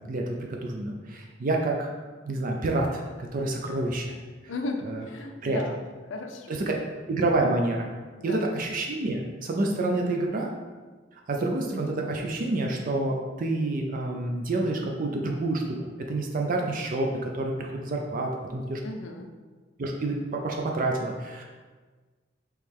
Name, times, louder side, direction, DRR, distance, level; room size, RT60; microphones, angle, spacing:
voice 1, 0.0-1.9 2.2-4.1 4.9-5.0 5.4-5.6 6.7-6.8 7.1-7.9 8.2-10.5 11.3-18.8 19.8-21.4, right 2 dB, 45° right, 1 dB, 0.4 m, -28 dB
voice 2, 4.5-6.6 8.2-8.6 18.8-19.3, left 2 dB, 75° left, 5 dB, 0.5 m, -36 dB
4.7 x 3.1 x 3.5 m, 1.4 s
head